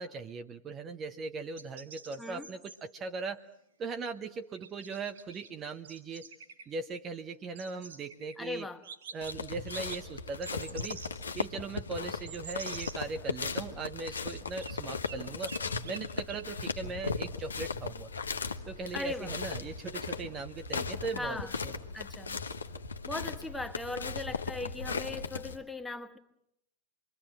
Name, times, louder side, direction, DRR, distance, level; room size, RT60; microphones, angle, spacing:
voice 1, 0.0-3.4 3.8-6.3 6.7-8.7 9.1-11.0 11.3-15.6 15.8-18.1 18.7-21.7, right 4 dB, 25° right, 7 dB, 1.1 m, -39 dB
sound 1, 1.6-2.8 4.5-5.5 5.8-6.6 7.5-8.3 8.8-9.3 9.7-10.0 10.4-11.1 11.7-11.8 12.3-12.9 14.6-14.7 15.0-15.2 15.4-16.0 16.3-16.4, right 6 dB, 65° right, 5.7 m, -46 dB
voice 2, 8.4-8.8 18.9-19.3 21.1-21.6 21.9-22.4 23.1-26.2, left 2 dB, 5° left, 6 dB, 1.7 m, -39 dB
sound 2, 9.2-25.6, left 4 dB, 75° left, 1.3 m, -37 dB
27.0 x 23.0 x 7.7 m, 0.75 s
figure-of-eight pair, 90°, 0 cm